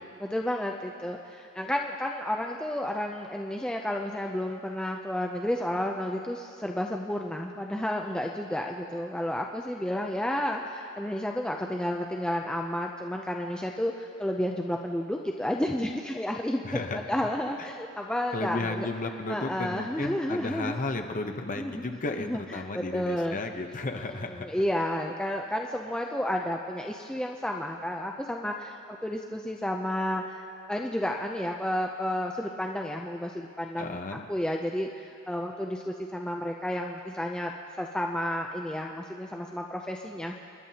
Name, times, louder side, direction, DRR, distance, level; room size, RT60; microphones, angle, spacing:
voice 1, 0.2-16.8 17.1-18.9 19.3-20.8 21.6-21.8 22.2-23.4 23.9-37.5 37.8-40.4, left 1 dB, 5° left, 1 dB, 0.4 m, -31 dB
voice 2, 16.6-17.0 18.3-24.5 33.8-34.2, left 2 dB, 35° left, 5 dB, 0.8 m, -33 dB
27.0 x 11.0 x 2.8 m, 2.6 s
head